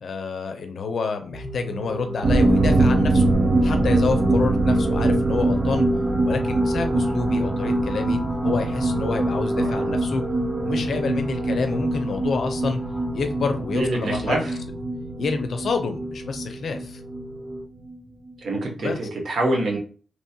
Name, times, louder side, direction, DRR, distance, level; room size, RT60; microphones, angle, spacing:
voice 1, 0.0-3.3 3.6-5.9 6.2-10.2 10.6-12.8 13.1-14.4 15.2-17.0 18.8-19.0, left 4 dB, 70° left, 6 dB, 0.5 m, -28 dB
sound 1, 1.3-17.6, right 1 dB, 5° left, 0.7 m, -33 dB
sound 2, 2.2-17.6 17.9-18.0 18.3-18.4, right 2 dB, 45° right, 0.5 m, -23 dB
voice 2, 9.5-10.0 13.7-14.6 18.4-19.8, right 1 dB, 70° right, 0 dB, 1.1 m, -26 dB
3.0 x 2.8 x 2.2 m, 0.40 s
wide cardioid pair, 150°, 0 cm